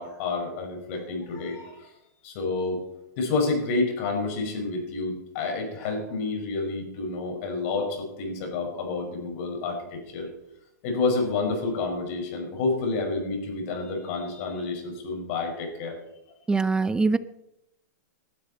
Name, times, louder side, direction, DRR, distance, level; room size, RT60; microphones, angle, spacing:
voice 1, 0.0-1.9 2.2-2.8 3.2-10.3 10.8-16.0, left 3 dB, 50° left, 3 dB, 5.6 m, -29 dB
voice 2, 16.5-17.2, right 4 dB, 10° right, 15 dB, 0.6 m, -22 dB
19.0 x 12.5 x 4.3 m, 0.86 s
hypercardioid pair, 140°, 10 cm